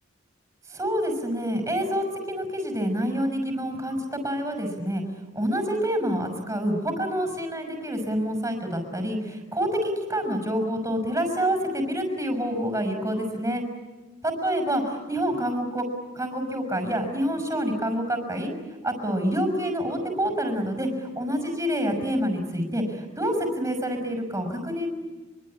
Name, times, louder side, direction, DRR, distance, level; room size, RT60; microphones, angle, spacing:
voice 1, 0.7-5.0 5.3-13.6 14.2-15.9 16.1-18.5 18.8-24.9, equal, 15° right, 4 dB, 5.6 m, -27 dB
25.0 x 24.0 x 8.8 m, 1.3 s
head